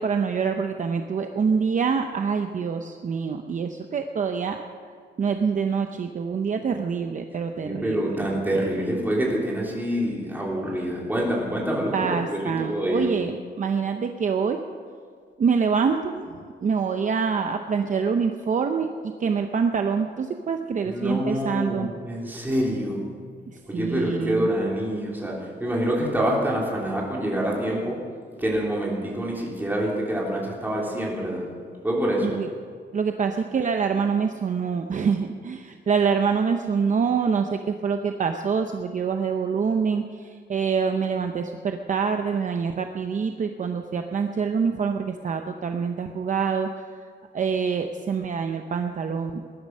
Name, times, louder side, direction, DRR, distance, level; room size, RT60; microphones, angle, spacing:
voice 1, 0.0-4.6 5.2-8.3 11.9-14.6 15.4-21.9 23.5-24.5 32.2-32.5 32.9-47.1 47.3-49.4, right 6 dB, 45° right, 5 dB, 0.7 m, -26 dB
voice 2, 7.6-13.1 20.8-23.0 23.7-28.0 28.4-31.4 31.8-32.3, equal, 10° right, -4 dB, 3.4 m, -26 dB
20.5 x 11.0 x 5.4 m, 2.1 s
wide cardioid pair, 175°, 18 cm